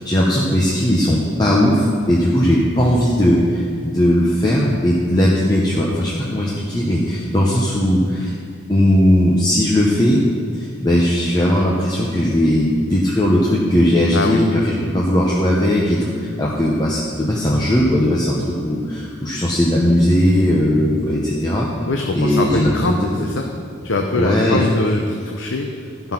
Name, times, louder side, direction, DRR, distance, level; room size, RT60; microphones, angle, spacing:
voice 1, 0.0-8.3 8.7-10.2 10.5-21.7 22.1-22.9 24.1-24.6, left 1 dB, 20° left, -4 dB, 0.9 m, -18 dB
voice 2, 14.1-14.4 21.9-23.5 23.8-26.1, left 2 dB, 75° left, 2 dB, 0.7 m, -23 dB
13.0 x 5.7 x 5.9 m, 2.3 s
head